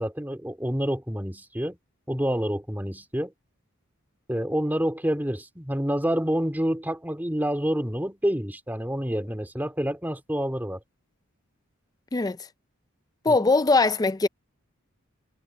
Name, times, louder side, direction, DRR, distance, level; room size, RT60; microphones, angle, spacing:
voice 1, 0.0-1.8 2.1-3.3 4.3-10.8 13.3-13.4, equal, 10° right, 2.5 m, -28 dB
voice 2, 13.2-14.3, left 3 dB, 20° left, 0.5 m, -21 dB
head